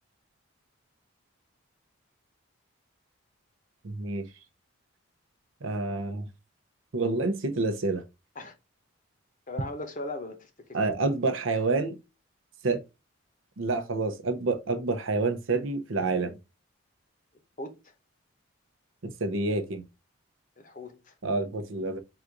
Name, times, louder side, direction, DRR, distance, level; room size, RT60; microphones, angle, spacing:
voice 1, 3.8-4.3 5.6-6.3 6.9-8.0 10.7-12.0 12.6-12.8 13.6-16.4 19.0-19.8 21.2-22.0, right 3 dB, 70° right, 0.7 m, -28 dB
voice 2, 9.5-10.8 17.6-17.9 20.6-21.1, left 2 dB, 35° left, 0.8 m, -39 dB
4.0 x 2.5 x 4.5 m
head